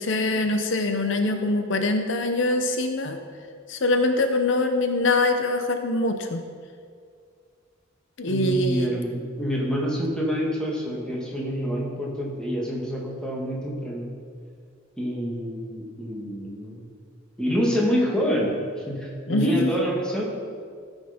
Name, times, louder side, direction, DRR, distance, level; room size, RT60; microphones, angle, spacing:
voice 1, 0.0-3.2 3.7-6.4 8.2-9.0 19.3-19.7, left 2 dB, 65° left, 6 dB, 0.7 m, -23 dB
voice 2, 8.3-14.1 15.0-16.8 17.4-18.6 18.9-20.2, equal, 5° left, -3 dB, 1.8 m, -27 dB
14.0 x 6.4 x 5.1 m, 2.1 s
head